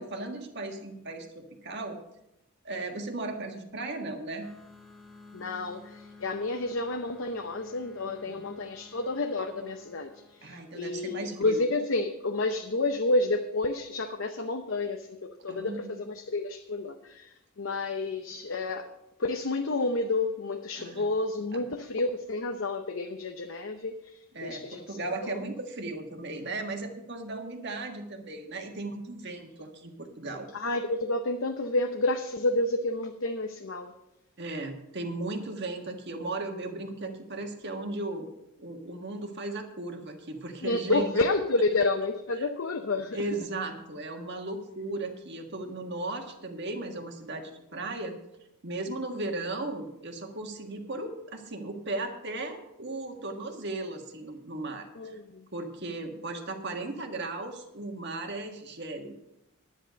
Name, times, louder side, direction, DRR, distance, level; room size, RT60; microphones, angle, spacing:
voice 1, 0.0-2.0 2.6-4.5 8.2-8.4 10.4-11.6 15.5-16.0 20.8-21.0 21.5-21.6 24.3-30.5 34.4-38.3 38.6-41.1 42.4-42.5 43.1-48.1 48.6-55.2 55.5-59.2, right 2 dB, 50° right, 4 dB, 1.6 m, -36 dB
sound 1, 4.4-11.8, left 3 dB, ahead, 1.4 m, -53 dB
voice 2, 5.3-18.9 19.2-25.0 25.2-25.4 30.5-33.9 40.6-43.2 55.0-55.4, left 2 dB, 60° left, 6 dB, 0.7 m, -30 dB
10.5 x 10.0 x 5.2 m, 0.87 s
head